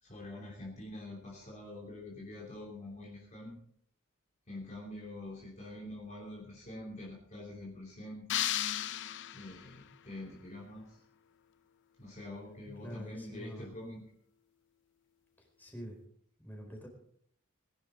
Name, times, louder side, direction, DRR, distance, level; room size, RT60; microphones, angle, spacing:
voice 1, 0.0-3.6 4.5-8.3 9.3-11.0 12.0-14.0, left 1 dB, 35° left, -3 dB, 3.1 m, -45 dB
sound 1, 8.3-9.8, left 11 dB, 60° left, 0.6 m, -34 dB
voice 2, 12.8-13.8 15.4-16.0 16.4-16.9, equal, 10° left, 0 dB, 4.5 m, -46 dB
21.0 x 11.5 x 4.0 m, 0.66 s
head